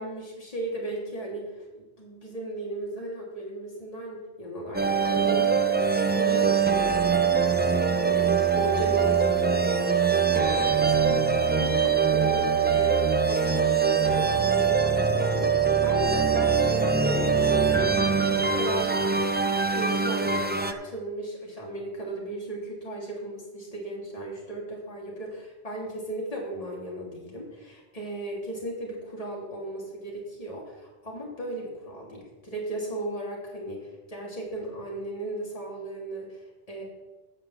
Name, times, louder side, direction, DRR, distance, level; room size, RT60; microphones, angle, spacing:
voice 1, 0.0-5.7 6.1-7.6 8.0-19.0 19.7-36.4 36.7-36.8, right 1 dB, 35° left, -3 dB, 2.8 m, -36 dB
sound 1, 4.7-20.7, right 6 dB, 15° right, 0.3 m, -23 dB
8.7 x 6.2 x 7.7 m, 1.1 s
omnidirectional pair, 1.1 m